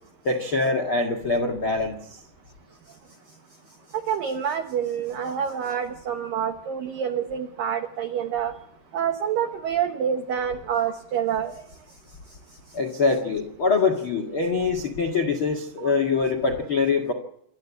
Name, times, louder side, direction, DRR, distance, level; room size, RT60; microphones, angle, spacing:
voice 1, 0.2-2.0 12.7-17.1, left 4 dB, 90° left, 5 dB, 1.1 m, -24 dB
voice 2, 3.9-8.5 8.9-11.6, right 8 dB, 90° right, 6 dB, 1.9 m, -27 dB
27.0 x 13.0 x 8.4 m, 0.71 s
omnidirectional pair, 5.8 m